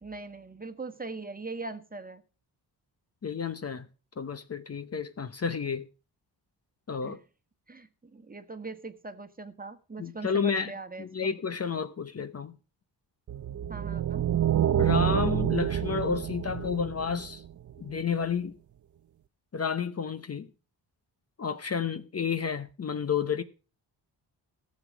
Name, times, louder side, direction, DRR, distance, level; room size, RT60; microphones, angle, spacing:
voice 1, 0.0-2.2 7.0-7.2 7.7-11.0 13.7-14.2, right 3 dB, 20° right, 1.4 m, -41 dB
voice 2, 3.2-3.9 4.2-5.8 6.9-7.2 10.0-10.7 11.0-12.6 14.8-17.4 17.8-18.6 19.5-20.5 21.4-23.4, left 6 dB, 35° left, 0.9 m, -31 dB
sound 1, 13.3-17.7, right 10 dB, 45° right, 0.6 m, -27 dB
14.5 x 7.2 x 6.1 m
cardioid pair, 80°, 43 cm